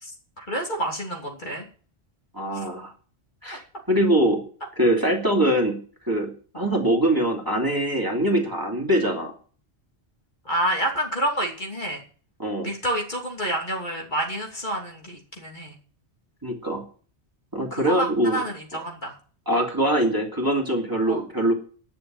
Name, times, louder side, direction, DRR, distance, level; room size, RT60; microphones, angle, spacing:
voice 1, 0.0-1.7 2.5-2.7 6.5-6.7 10.4-12.0 12.6-15.8 17.7-19.1 21.1-21.2, right 1 dB, 45° left, 0 dB, 3.1 m, -29 dB
voice 2, 2.3-2.9 3.4-4.4 4.8-5.8 6.1-9.3 12.4-12.7 16.4-16.8 17.5-18.4 19.5-21.5, right 1 dB, 20° right, 0 dB, 2.8 m, -23 dB
11.0 x 7.1 x 9.0 m, 0.41 s
omnidirectional pair, 1.1 m